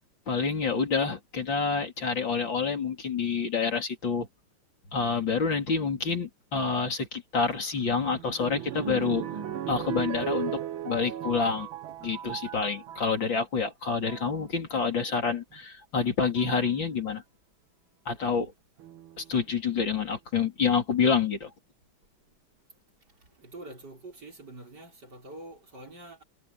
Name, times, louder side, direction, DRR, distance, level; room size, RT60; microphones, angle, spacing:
voice 1, 0.3-4.3 4.9-9.2 9.7-11.7 12.0-17.2 18.1-18.5 19.2-21.5, left 5 dB, 60° left, 3.9 m, -28 dB
sound 1, 7.5-13.1 13.9-14.3 15.6-15.7 16.4-16.7 18.8-19.4 20.1-20.2 20.4-20.5, right 10 dB, 70° right, 1.9 m, -36 dB
voice 2, 23.2-26.2, right 2 dB, 50° right, 6.6 m, -46 dB
omnidirectional pair, 2.3 m